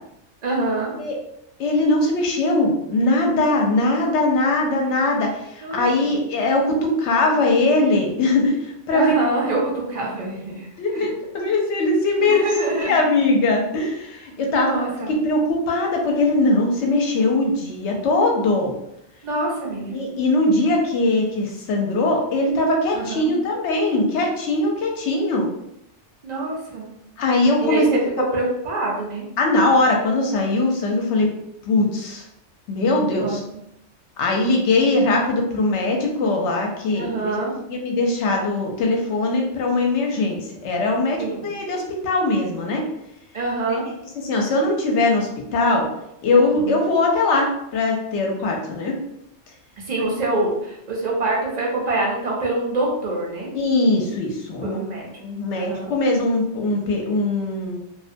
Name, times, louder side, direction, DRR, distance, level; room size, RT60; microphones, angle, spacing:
voice 1, 0.4-0.9 5.6-6.2 8.9-11.1 12.2-13.0 14.5-15.1 19.2-20.0 22.9-23.4 26.2-26.9 27.6-29.2 33.2-33.4 36.9-37.5 41.2-41.5 43.3-43.8 46.5-46.8 49.8-53.5 54.6-55.1 55.5-55.9, right 2 dB, 45° right, -2 dB, 0.6 m, -25 dB
voice 2, 1.6-9.1 10.8-18.7 19.9-25.5 27.2-27.9 29.4-31.3 31.7-32.2 32.7-33.4 34.2-37.4 37.7-42.9 44.2-45.9 46.2-48.9 53.5-54.8 55.2-57.8, left 2 dB, 75° left, 1 dB, 0.8 m, -21 dB
2.4 x 2.1 x 2.5 m, 0.81 s
omnidirectional pair, 1.2 m